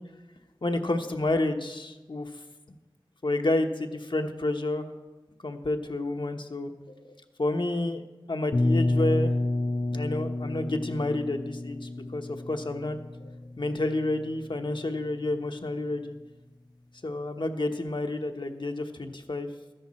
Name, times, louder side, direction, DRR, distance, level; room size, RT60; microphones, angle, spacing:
voice 1, 0.6-2.3 3.2-4.9 5.4-7.1 7.4-8.0 8.3-9.3 9.9-16.1 17.0-19.5, left 2 dB, 70° left, 5 dB, 1.0 m, -30 dB
sound 1, 8.5-14.3, left 2 dB, 50° left, 0.7 m, -29 dB
13.5 x 10.5 x 4.3 m, 1.1 s
wide cardioid pair, 45°, 9 cm